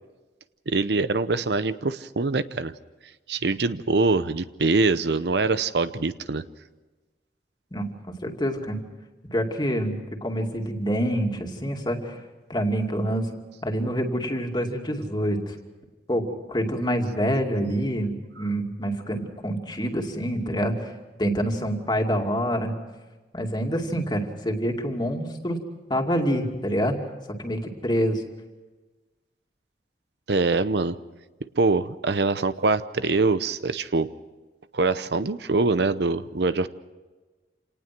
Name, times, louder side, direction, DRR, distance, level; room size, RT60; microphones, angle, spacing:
voice 1, 0.7-2.7 3.3-6.4 30.3-31.0 31.5-34.1 34.7-36.7, right 3 dB, 70° right, 13 dB, 0.8 m, -24 dB
voice 2, 7.7-8.8 9.3-12.2 12.5-13.3 13.6-15.6 16.1-20.9 21.2-22.7 23.3-25.6 25.9-26.9 27.4-28.2, equal, 25° left, 3 dB, 2.5 m, -26 dB
27.5 x 19.0 x 6.1 m, 1.2 s
head